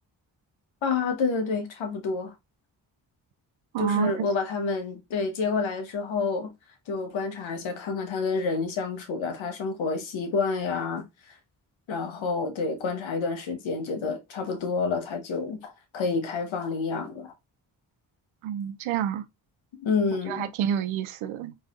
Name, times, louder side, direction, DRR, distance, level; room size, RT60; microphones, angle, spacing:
voice 1, 0.8-2.3 3.8-6.5 6.9-11.4 11.9-17.3 19.8-20.5, left 4 dB, 70° left, 1.1 m, -29 dB
voice 2, 3.7-4.3 18.4-19.2 20.1-21.6, right 9 dB, 80° right, 0.6 m, -28 dB
3.9 x 3.1 x 2.4 m
supercardioid pair, 45°, 48 cm